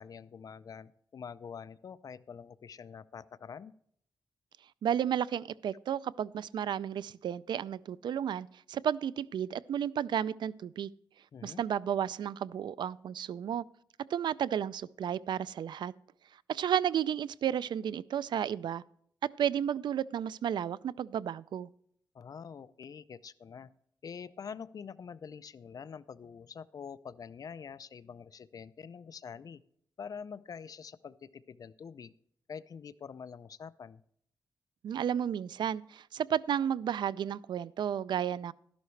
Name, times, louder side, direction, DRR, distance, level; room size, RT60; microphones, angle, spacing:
voice 1, 0.0-3.7 11.3-11.6 22.1-23.7 24.0-29.6 30.0-32.1 32.5-34.0, left 6 dB, 55° left, 15 dB, 0.5 m, -46 dB
voice 2, 4.8-10.9 11.4-13.6 14.1-15.9 16.5-18.8 19.4-21.7 34.8-38.5, right 9 dB, 80° right, 19 dB, 0.3 m, -32 dB
12.5 x 11.5 x 3.2 m, 0.68 s
wide cardioid pair, 115°, 8 cm